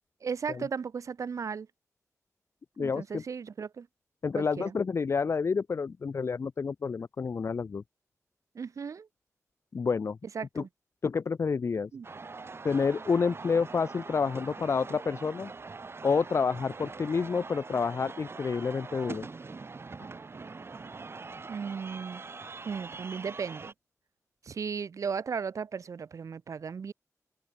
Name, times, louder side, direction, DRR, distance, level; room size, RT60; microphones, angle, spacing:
voice 1, 0.2-1.7 2.8-3.9 4.3-4.7 8.5-9.1 10.3-10.7 11.9-12.1 21.5-22.2 22.6-23.7 24.4-26.9, right 6 dB, 65° right, 0.6 m, -36 dB
voice 2, 2.8-3.2 4.2-7.8 9.7-10.2 10.6-10.7 11.0-11.9 12.6-15.5 16.0-19.3, left 5 dB, 50° left, 0.5 m, -29 dB
sound 1, 12.0-23.7, right 4 dB, 45° right, 4.0 m, -43 dB
wide cardioid pair, 130°, 6 cm